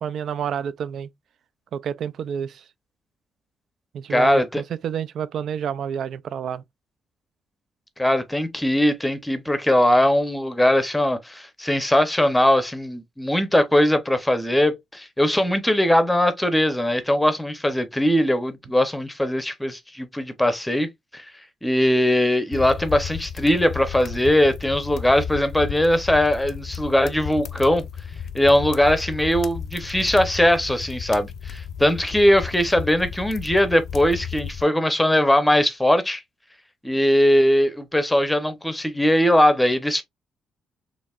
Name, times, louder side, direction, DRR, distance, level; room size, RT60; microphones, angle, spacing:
voice 1, 0.0-1.1 1.7-2.6 3.9-6.6, right 8 dB, 60° right, 0.4 m, -29 dB
voice 2, 4.1-4.6 8.0-21.2 21.6-27.8 28.3-36.2 36.8-40.0, left 1 dB, 5° left, 0.7 m, -20 dB
sound 1, 22.5-34.6, left 7 dB, 55° left, 0.4 m, -34 dB
4.6 x 3.0 x 2.4 m
cardioid pair, 135°, 0 cm